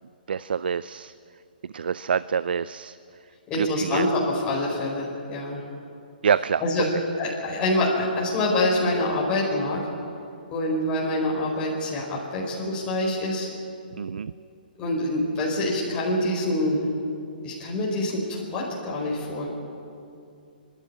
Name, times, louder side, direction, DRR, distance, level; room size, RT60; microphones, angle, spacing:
voice 1, 0.3-1.1 1.7-3.0 3.6-4.1 6.2-6.6 14.0-14.3, right 7 dB, 75° right, 16 dB, 0.4 m, -26 dB
voice 2, 3.5-5.6 6.6-6.9 7.2-9.8 10.5-13.5 14.8-16.8 17.4-19.5, left 1 dB, 20° left, -5 dB, 5.0 m, -26 dB
25.5 x 12.0 x 9.9 m, 2.5 s
hypercardioid pair, 150°, 5 cm